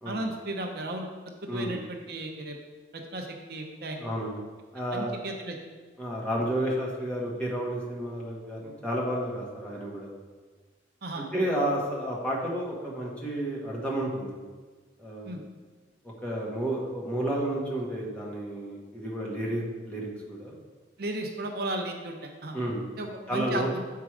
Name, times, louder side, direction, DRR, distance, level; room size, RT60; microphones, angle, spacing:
voice 1, 0.1-2.6 2.9-4.0 4.9-5.6 11.0-11.2 15.3-15.4 21.0-22.6 23.0-23.8, right 1 dB, 55° right, 3 dB, 0.7 m, -35 dB
voice 2, 1.5-1.8 4.0-4.4 4.7-5.2 6.0-10.1 11.1-14.4 15.0-15.4 16.2-20.6 22.5-22.9 23.3-23.7, right 1 dB, 5° left, -4 dB, 1.3 m, -31 dB
7.2 x 4.6 x 4.9 m, 1.4 s
head